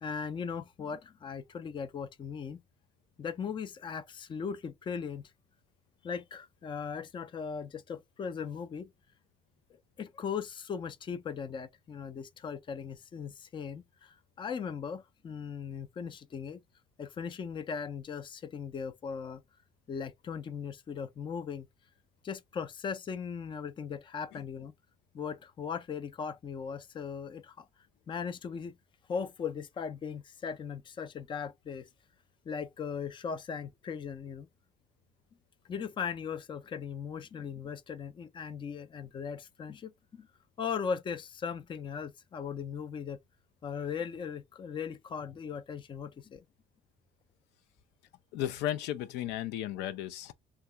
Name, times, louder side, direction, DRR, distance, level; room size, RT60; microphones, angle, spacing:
voice 1, 0.0-2.6 3.2-5.2 6.0-8.9 10.0-16.6 17.0-19.4 19.9-21.7 22.2-24.7 25.1-27.7 28.1-28.8 29.1-31.9 32.5-34.5 35.7-40.3 40.6-43.2 43.6-46.4, left 6 dB, 30° left, 0.4 m, -38 dB
voice 2, 48.3-50.3, left 12 dB, 85° left, 0.5 m, -34 dB
2.8 x 2.3 x 3.3 m
cardioid pair, 110°, 17 cm